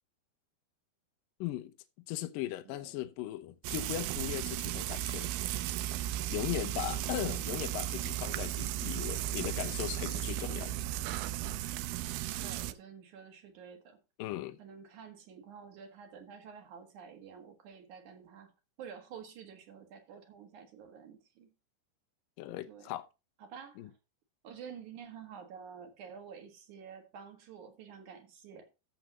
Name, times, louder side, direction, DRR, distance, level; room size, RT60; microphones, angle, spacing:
voice 1, 1.4-1.7 2.1-5.3 6.3-10.7 14.2-14.6 22.4-23.1 23.8-23.9, left 14 dB, 75° left, 2.1 m, -38 dB
voice 2, 2.7-3.0 6.9-7.3 12.4-14.0 14.6-18.5 18.8-21.5 22.7-22.9 23.4-23.9 24.4-28.7, right 7 dB, 55° right, 2.5 m, -50 dB
Frying (food), 3.6-12.7, right 14 dB, 85° right, 2.2 m, -35 dB
14.0 x 6.8 x 2.9 m
omnidirectional pair, 5.0 m